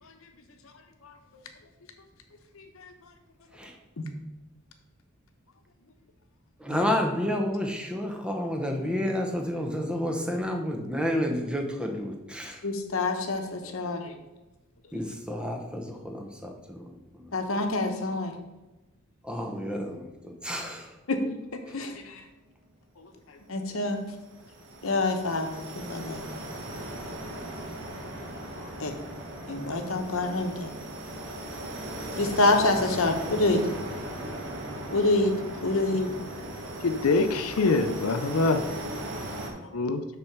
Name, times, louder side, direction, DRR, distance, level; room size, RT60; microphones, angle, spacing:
voice 1, 2.6-2.9 4.0-4.1 6.7-6.8 12.6-14.1 17.3-18.3 21.1-21.2 21.7-22.2 23.5-24.0 24.8-26.2 28.6-28.9 29.5-30.7 32.2-33.6 34.9-35.3 35.6-36.1 39.6-39.7, left 2 dB, 70° left, 5 dB, 0.9 m, -27 dB
voice 2, 6.6-12.6 14.9-17.4 19.2-20.9, equal, 5° right, 2 dB, 0.8 m, -30 dB
sound 1, 23.8-39.5, right 1 dB, 60° right, 1.4 m, -38 dB
voice 3, 36.8-38.6 39.7-40.0, left 3 dB, 90° left, 9 dB, 0.5 m, -24 dB
6.3 x 4.3 x 5.9 m, 1.1 s
head